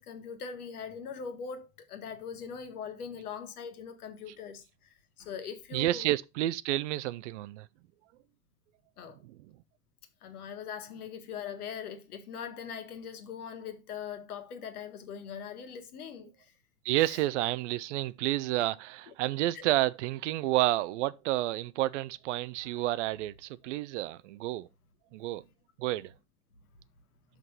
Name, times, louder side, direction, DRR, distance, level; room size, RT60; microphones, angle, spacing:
voice 1, 0.0-6.1 9.0-9.2 10.2-16.5 17.0-17.2 19.5-19.6, left 7 dB, 65° left, 1.7 m, -41 dB
voice 2, 5.7-7.7 9.2-9.4 16.8-24.7 25.1-25.4 25.8-26.1, right 16 dB, 50° right, 0.5 m, -30 dB
6.0 x 5.8 x 5.5 m
figure-of-eight pair, 85°, 47 cm